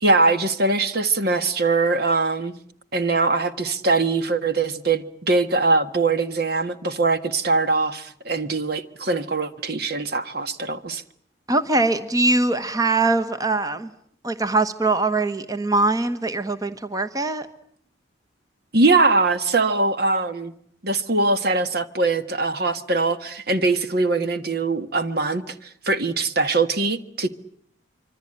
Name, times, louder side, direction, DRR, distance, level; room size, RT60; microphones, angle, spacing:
voice 1, 0.0-2.6 2.9-11.0 18.7-20.5 20.8-25.4 25.9-27.3, right 3 dB, 50° right, 1.6 m, -22 dB
voice 2, 11.5-13.9 14.2-17.5, right 2 dB, 20° right, 1.2 m, -22 dB
25.5 x 25.0 x 8.9 m
head